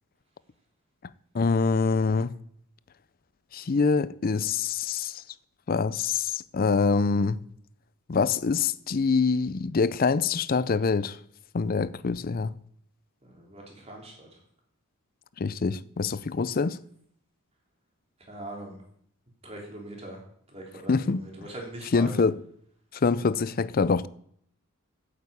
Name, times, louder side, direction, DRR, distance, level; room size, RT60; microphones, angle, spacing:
voice 1, 1.3-2.4 3.5-5.2 5.7-7.4 8.1-11.2 11.5-12.5 15.4-16.8 20.9-21.2 21.9-22.4 23.0-24.1, left 4 dB, 40° left, 0.5 m, -25 dB
voice 2, 13.2-14.3 18.3-18.8 19.4-20.2 20.5-22.1, right 1 dB, 30° right, 3.4 m, -41 dB
8.6 x 8.5 x 8.4 m
head